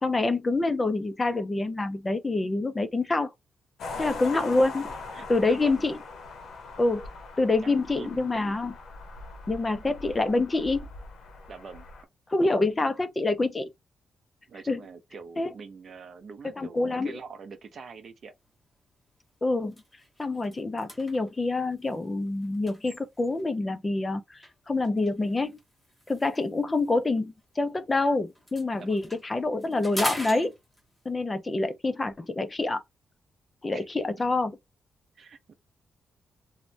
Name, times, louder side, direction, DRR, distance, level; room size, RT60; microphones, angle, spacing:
voice 1, 0.0-3.3 4.0-4.8 5.3-6.0 6.8-7.1 7.4-8.8 9.5-10.9 12.3-13.7 14.7-14.8 15.4-15.5 16.6-17.2 19.4-19.8 20.2-24.4 24.7-25.5 26.1-30.5 31.1-32.8 33.6-34.5, left 2 dB, 20° left, 0.4 m, -26 dB
sound 1, 3.8-12.0, left 3 dB, 65° left, 0.7 m, -41 dB
voice 2, 4.0-4.4 5.1-5.9 7.6-8.4 11.5-11.9 14.5-18.3 28.8-29.0 33.7-33.9 35.2-35.5, right 5 dB, 45° right, 0.5 m, -45 dB
sound 2, 18.5-18.7 19.1-19.3 19.6-23.6 24.4-28.0 28.3-31.1, equal, 5° left, 0.8 m, -41 dB
3.1 x 2.1 x 2.5 m
wide cardioid pair, 165°, 0 cm